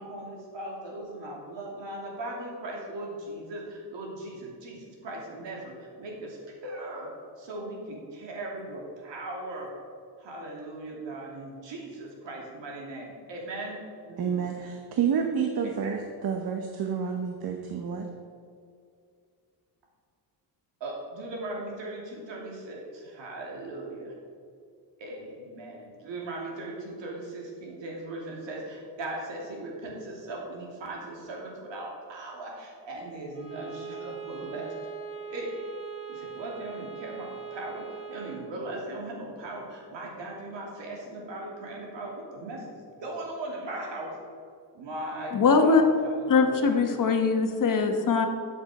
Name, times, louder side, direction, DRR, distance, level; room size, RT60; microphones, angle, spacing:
voice 1, 0.0-9.7 10.2-14.5 15.6-16.0 20.8-24.1 25.0-34.7 35.3-35.5 36.1-44.2 44.7-46.8, right 2 dB, 80° right, -1 dB, 2.7 m, -38 dB
voice 2, 14.2-18.1, right 7 dB, 55° right, 4 dB, 1.0 m, -29 dB
Bowed string instrument, 33.3-38.5, right 7 dB, 15° right, 1.8 m, -41 dB
voice 3, 45.3-45.8 46.3-48.3, left 4 dB, 45° left, 5 dB, 1.2 m, -22 dB
13.0 x 7.1 x 4.8 m, 2.3 s
cardioid pair, 135°, 43 cm